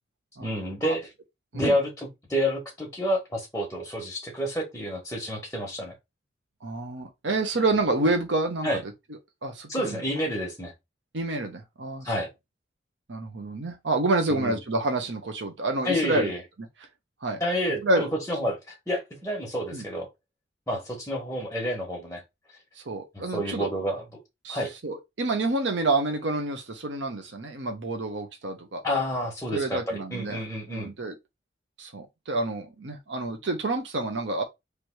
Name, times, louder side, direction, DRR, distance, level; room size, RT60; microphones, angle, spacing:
voice 1, 0.4-1.1 1.5-5.9 8.6-8.8 9.7-10.7 12.0-12.3 14.3-14.6 15.8-16.4 17.4-20.1 20.7-22.2 23.1-24.0 24.5-24.7 28.8-30.9, equal, 10° left, 1.4 m, -29 dB
voice 2, 6.6-8.7 9.4-10.0 11.1-12.1 13.1-16.3 17.2-17.4 17.8-18.1 19.7-19.8 22.9-23.7 24.4-28.8 29.5-30.4 30.7-31.1 31.8-34.4, right 2 dB, 85° right, 0.9 m, -28 dB
3.3 x 3.1 x 4.7 m
head